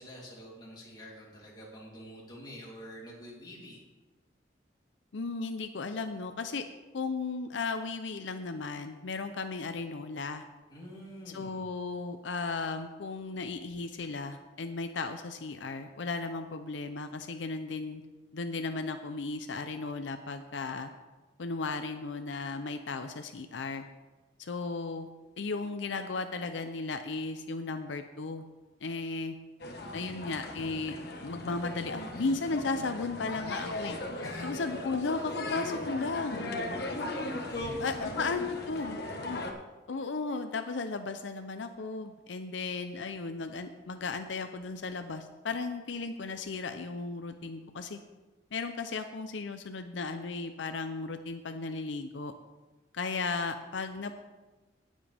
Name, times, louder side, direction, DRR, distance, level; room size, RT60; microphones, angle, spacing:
voice 1, 0.0-3.8 10.7-11.6 34.2-34.5 37.4-38.1, equal, 25° left, -5 dB, 3.2 m, -47 dB
voice 2, 5.1-6.6 6.9-10.4 11.3-18.0 18.3-20.9 21.4-23.8 24.4-25.1 25.4-28.4 28.8-29.4 29.9-30.9 31.2-34.0 34.4-36.5 37.8-39.4 39.9-48.0 48.5-52.3 52.9-54.2, left 3 dB, 80° left, 8 dB, 0.6 m, -35 dB
sound 1, 29.6-39.5, left 2 dB, 60° left, 1.3 m, -37 dB
18.5 x 7.4 x 3.5 m, 1.2 s
head